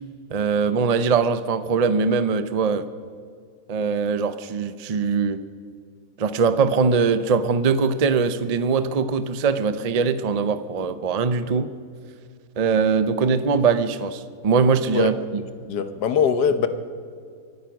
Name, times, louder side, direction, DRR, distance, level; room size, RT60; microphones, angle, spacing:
voice 1, 0.3-2.9 3.7-5.4 6.2-11.7 12.6-15.4, right 5 dB, 75° right, 12 dB, 0.3 m, -21 dB
voice 2, 15.6-16.7, left 7 dB, 75° left, 10 dB, 1.5 m, -21 dB
24.0 x 9.5 x 6.0 m, 2.2 s
omnidirectional pair, 1.8 m